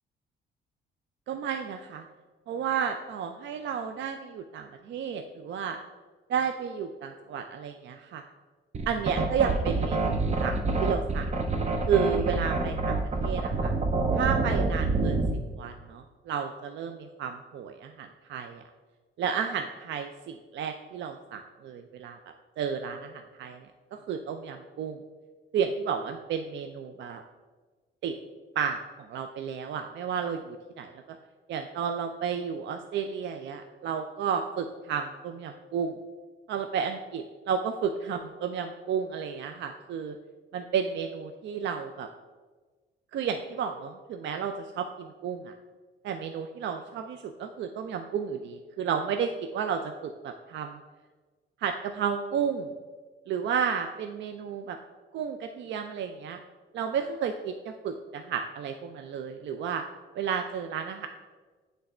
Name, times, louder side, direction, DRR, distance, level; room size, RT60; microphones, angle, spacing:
voice 1, 1.3-2.0 2.5-5.8 6.3-8.2 8.9-10.5 10.8-11.3 11.9-13.7 14.1-15.2 15.6-18.6 19.2-22.2 22.6-23.6 23.9-25.0 25.5-27.2 28.0-28.2 28.6-28.8 29.1-31.2 31.5-36.0 36.5-40.2 40.5-42.1 43.1-45.5 46.0-50.8 51.6-52.7 53.3-54.8 55.1-56.4 56.7-59.8 60.1-61.1, right 7 dB, 65° right, 6 dB, 0.4 m, -32 dB
sound 1, 8.7-15.4, right 3 dB, 35° right, 0.8 m, -27 dB
7.9 x 3.4 x 4.2 m, 1.3 s
cardioid pair, 90°, 20 cm